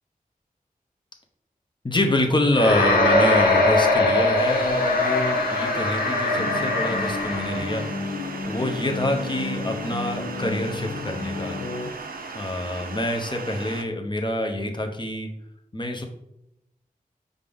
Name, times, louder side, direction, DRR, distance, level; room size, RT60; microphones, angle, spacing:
voice 1, 1.8-7.9 8.5-11.6 12.3-15.3 15.7-16.1, left 1 dB, 30° left, 3 dB, 0.8 m, -26 dB
sound 1, 2.5-7.9, left 2 dB, 85° left, 0.9 m, -21 dB
sound 2, 4.4-13.8, right 4 dB, 80° right, 0.6 m, -37 dB
sound 3, 6.4-11.9, left 3 dB, 65° left, 0.4 m, -32 dB
5.2 x 2.6 x 3.6 m, 0.79 s
cardioid pair, 45°, 15 cm